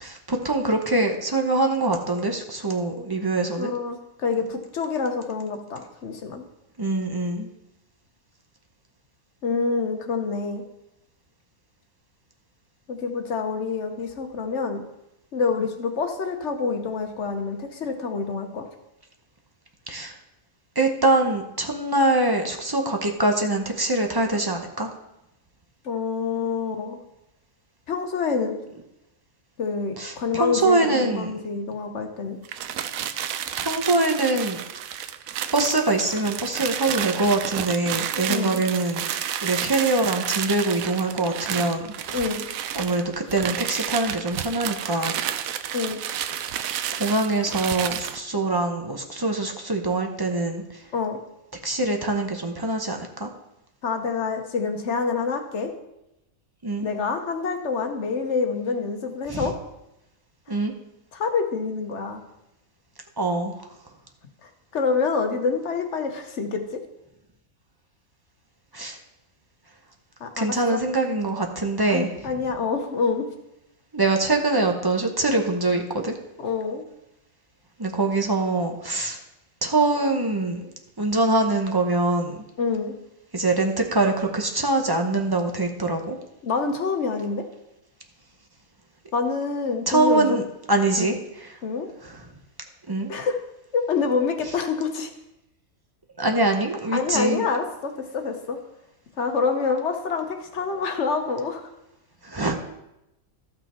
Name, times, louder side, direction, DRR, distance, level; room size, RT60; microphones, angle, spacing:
voice 1, 0.0-3.7 6.8-7.5 19.9-20.2 20.7-24.9 30.0-31.3 33.6-34.6 35.5-39.0 39.4-42.2 42.7-45.1 46.9-50.8 51.6-53.3 56.6-56.9 59.3-59.5 60.5-60.7 63.2-63.7 68.7-69.0 70.4-72.1 73.9-76.2 77.8-79.2 79.6-80.7 81.0-82.4 83.3-86.2 89.9-90.4 90.7-91.6 92.0-92.3 92.9-93.1 96.2-97.4 102.2-102.5, right 2 dB, 20° right, 3 dB, 0.8 m, -24 dB
voice 2, 3.6-6.4 9.4-10.6 12.9-14.8 15.3-18.6 25.8-27.0 27.9-28.5 29.6-32.4 38.3-38.6 42.1-42.5 45.7-46.0 50.9-51.2 53.8-55.7 56.8-59.5 61.1-62.2 64.4-66.6 70.2-70.5 71.8-73.3 76.4-76.8 82.6-82.9 86.4-87.4 89.1-90.4 91.0-91.1 91.6-91.9 93.1-93.4 93.7-95.1 96.9-98.6 99.2-101.7, left 5 dB, 55° left, 5 dB, 1.2 m, -27 dB
sound 1, 32.4-48.2, right 10 dB, 80° right, 1.0 m, -31 dB
13.5 x 6.0 x 4.3 m, 0.88 s
omnidirectional pair, 1.5 m